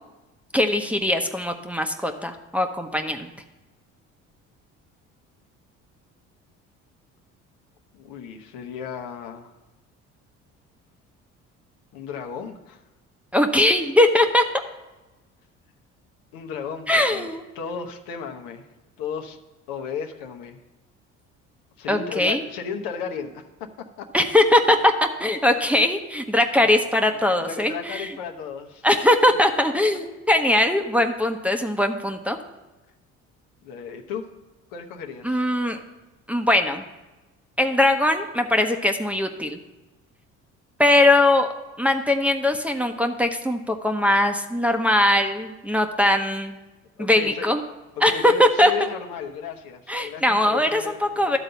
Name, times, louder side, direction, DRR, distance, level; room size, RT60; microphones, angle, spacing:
voice 1, 0.5-3.3 13.3-14.4 16.9-17.4 21.9-22.4 24.1-24.9 25.2-28.1 28.8-32.4 35.2-35.8 36.3-36.8 37.6-39.6 40.8-41.5 41.8-46.6 47.0-47.6 48.0-48.9 49.9-51.4, left 1 dB, 5° right, 3 dB, 0.8 m, -20 dB
voice 2, 7.9-9.5 11.9-12.8 16.3-18.7 19.0-19.4 19.7-20.6 21.8-24.1 26.6-26.7 27.1-28.9 33.6-34.3 34.7-35.5 47.0-47.5 48.0-51.4, left 6 dB, 75° left, 4 dB, 1.0 m, -34 dB
12.0 x 4.0 x 6.8 m, 1.1 s
supercardioid pair, 70°, 34 cm